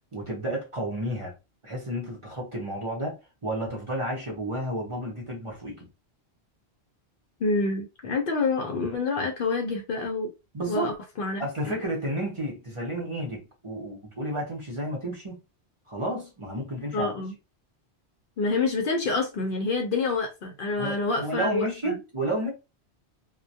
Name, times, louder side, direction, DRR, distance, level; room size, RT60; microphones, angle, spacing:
voice 1, 0.1-1.3 1.6-5.9 10.5-10.9 11.4-15.4 15.9-17.1 20.8-22.5, right 1 dB, 35° right, 0.7 m, -31 dB
voice 2, 7.4-10.3 10.7-11.7 16.9-17.3 18.4-22.0, left 3 dB, 60° left, 0.6 m, -27 dB
2.2 x 2.1 x 2.6 m
omnidirectional pair, 1.1 m